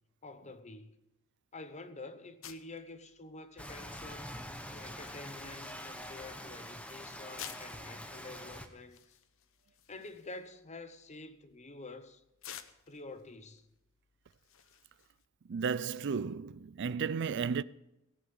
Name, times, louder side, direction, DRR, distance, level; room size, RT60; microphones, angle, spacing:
voice 1, 0.2-1.0 1.5-4.3 4.7-9.2 9.9-12.2 12.9-13.7, left 2 dB, 35° left, 1.1 m, -48 dB
sound 1, 2.4-15.3, left 10 dB, 70° left, 0.9 m, -55 dB
Rain, 3.6-8.7, equal, 5° left, 1.2 m, -45 dB
voice 2, 15.5-17.6, right 6 dB, 55° right, 0.4 m, -33 dB
17.5 x 8.5 x 8.1 m
head